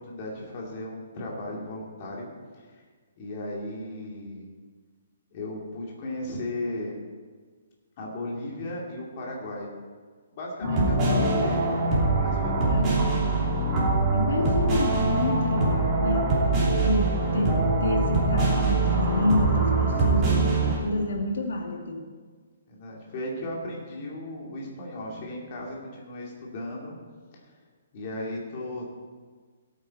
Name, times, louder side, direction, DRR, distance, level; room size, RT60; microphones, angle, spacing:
voice 1, 0.0-2.3 2.6-2.8 3.2-4.4 5.3-6.9 8.0-9.7 10.3-11.8 12.2-13.2 22.7-26.9 27.3-27.5 27.9-28.8, left 1 dB, 30° left, -3 dB, 2.5 m, -36 dB
voice 2, 10.6-11.3 12.7-13.3 14.1-16.5 16.8-22.1, left 1 dB, 85° left, 2 dB, 2.0 m, -29 dB
sound 1, 10.6-20.8, right 3 dB, 15° right, 2.8 m, -23 dB
17.0 x 8.9 x 4.4 m, 1.5 s
hypercardioid pair, 175°, 0 cm